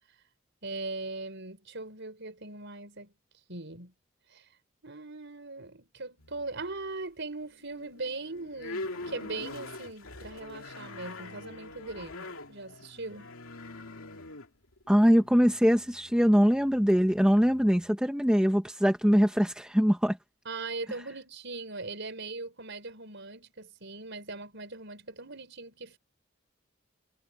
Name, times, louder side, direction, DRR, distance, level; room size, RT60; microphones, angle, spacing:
voice 1, 0.6-3.1 3.5-3.9 4.3-4.5 4.8-13.3 20.4-26.0, right 3 dB, 60° right, 5.9 m, -40 dB
sound 1, 6.2-6.9 7.4-17.9, left 2 dB, 80° left, 2.4 m, -44 dB
voice 2, 14.9-20.2, equal, 5° right, 1.2 m, -23 dB
head